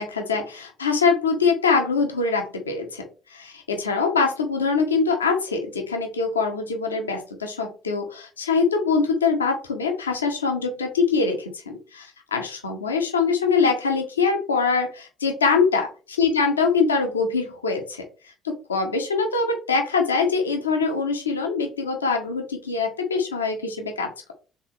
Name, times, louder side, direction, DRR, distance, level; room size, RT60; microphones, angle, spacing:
voice 1, 0.0-3.0 3.3-18.0 18.4-24.3, left 4 dB, 85° left, 4 dB, 0.9 m, -23 dB
4.6 x 3.5 x 3.1 m, 0.36 s
figure-of-eight pair, 55°, 0 cm